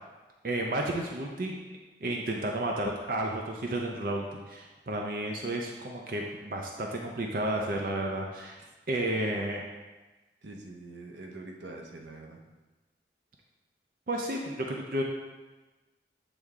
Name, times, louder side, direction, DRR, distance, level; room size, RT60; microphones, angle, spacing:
voice 1, 0.4-1.6 2.0-8.6 8.9-9.6 14.1-15.0, right 1 dB, 50° right, 0 dB, 0.5 m, -32 dB
voice 2, 10.4-12.4, right 2 dB, 90° right, 1 dB, 0.8 m, -45 dB
8.0 x 3.4 x 3.6 m, 1.2 s
head